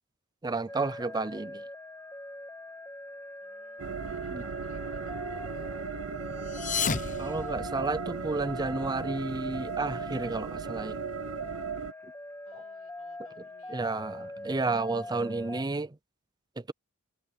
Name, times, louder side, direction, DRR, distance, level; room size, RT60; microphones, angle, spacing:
voice 1, 0.4-1.6 4.3-4.4 7.2-11.0 13.7-15.9 16.6-16.7, right 3 dB, 20° right, 0.5 m, -31 dB
sound 1, 0.7-15.6, left 1 dB, 10° left, 1.7 m, -42 dB
voice 2, 3.4-5.6 12.4-14.0, left 3 dB, 85° left, 6.9 m, -59 dB
sound 2, 3.8-11.9, right 6 dB, 80° right, 0.6 m, -37 dB
sound 3, 6.4-8.3, left 6 dB, 35° left, 0.8 m, -33 dB
head